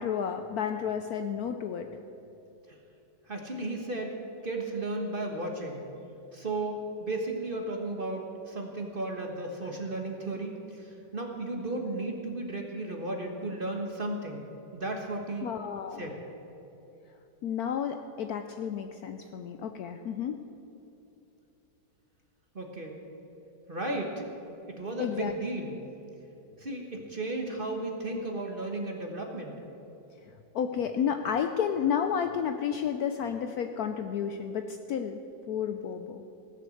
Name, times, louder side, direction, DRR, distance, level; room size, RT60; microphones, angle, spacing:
voice 1, 0.0-1.9 15.4-16.1 17.4-20.4 25.0-25.3 30.5-35.2 35.5-36.3, left 8 dB, 70° left, 7 dB, 0.9 m, -31 dB
voice 2, 3.3-4.1 4.4-5.8 6.3-14.5 14.7-15.5 16.0-16.2 22.5-23.0 23.7-24.3 24.7-25.8 26.6-29.6, right 2 dB, 35° right, 2 dB, 1.2 m, -34 dB
17.0 x 6.7 x 7.6 m, 2.9 s
omnidirectional pair, 2.0 m